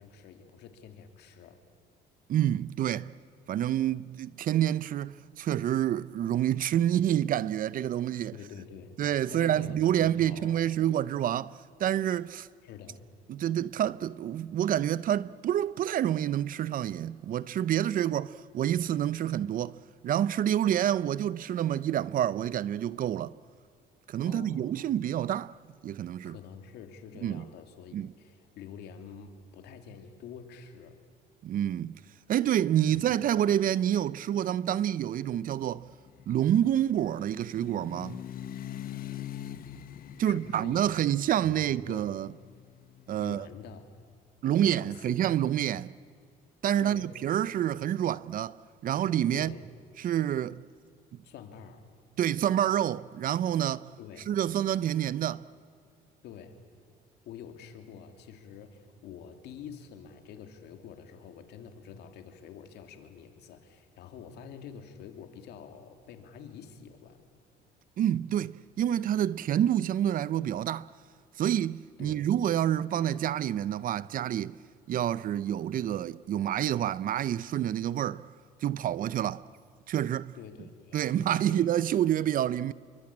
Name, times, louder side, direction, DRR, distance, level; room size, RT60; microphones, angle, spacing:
voice 1, 0.0-1.6 8.3-9.0 9.3-10.6 12.6-13.0 24.2-24.8 26.2-31.0 32.9-33.0 40.2-40.9 41.4-42.2 43.2-43.8 44.5-45.2 46.8-47.1 49.3-49.6 51.2-51.9 54.0-54.3 56.2-56.6 57.2-67.2 72.0-72.3 80.3-81.7, left 7 dB, 80° left, 3.1 m, -47 dB
voice 2, 2.3-3.1 3.5-8.3 9.0-11.5 11.8-12.5 13.3-19.7 20.0-23.3 24.1-25.5 25.8-26.4 27.2-27.4 27.9-28.1 31.4-32.0 32.3-35.9 36.3-38.2 40.2-42.3 43.1-43.5 44.4-45.9 46.6-48.6 48.8-49.5 50.0-50.6 52.2-53.9 54.3-55.4 68.0-70.9 71.4-74.6 74.9-78.3 78.6-79.4 79.9-80.4 80.9-82.7, right 11 dB, 55° right, 0.7 m, -28 dB
sound 1, 35.7-43.7, left 11 dB, 60° left, 1.3 m, -44 dB
28.0 x 24.0 x 8.7 m
cardioid pair, 110°, 17 cm